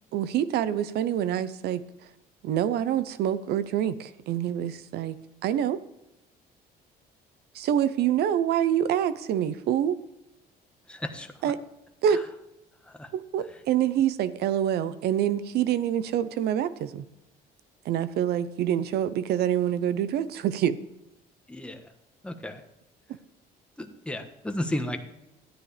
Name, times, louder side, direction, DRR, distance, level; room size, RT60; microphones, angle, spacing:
voice 1, 0.1-1.8 2.4-5.2 5.4-5.8 7.5-10.0 11.4-11.6 12.0-12.2 13.1-17.0 17.8-20.8, right 10 dB, 75° right, 15 dB, 0.8 m, -26 dB
voice 2, 10.9-11.5 12.9-13.1 21.5-21.9 22.2-22.6 23.8-25.0, left 1 dB, 5° left, 5 dB, 1.3 m, -34 dB
13.0 x 9.6 x 3.4 m, 0.90 s
cardioid pair, 110°, 17 cm